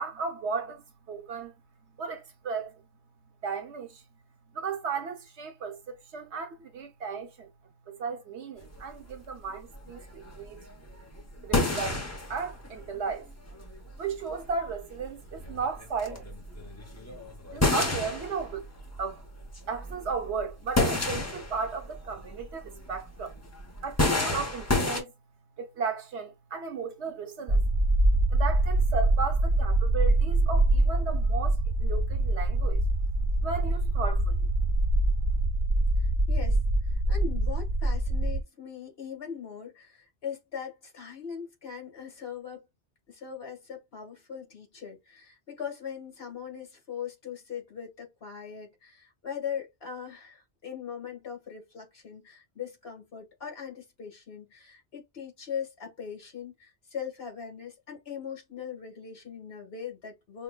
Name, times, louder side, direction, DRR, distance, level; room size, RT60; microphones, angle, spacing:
voice 1, 0.0-1.6 2.0-2.9 3.4-4.0 4.5-10.8 11.4-12.0 12.3-13.3 14.0-16.4 17.5-18.7 19.0-19.2 19.7-23.4 23.8-25.1 25.6-28.0 28.3-32.8 33.4-34.5, right 5 dB, 80° right, 1.1 m, -35 dB
sound 1, 8.6-25.0, left 2 dB, 15° left, 0.6 m, -31 dB
sound 2, 27.5-38.4, right 2 dB, 50° right, 0.9 m, -24 dB
voice 2, 36.0-36.6 36.9-42.6 43.1-60.4, left 7 dB, 65° left, 1.7 m, -40 dB
5.3 x 2.2 x 2.2 m
omnidirectional pair, 1.1 m